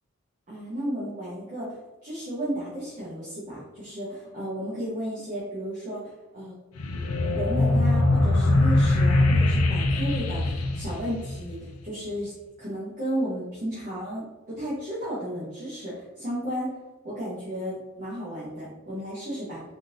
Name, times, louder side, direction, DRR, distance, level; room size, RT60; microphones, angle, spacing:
voice 1, 0.5-1.8 2.0-6.5 7.2-12.3 12.6-16.7 17.0-19.6, equal, 40° right, -9 dB, 0.9 m, -33 dB
sound 1, 6.8-11.7, left 2 dB, 85° left, 0.4 m, -22 dB
3.6 x 2.5 x 2.6 m, 1.1 s
head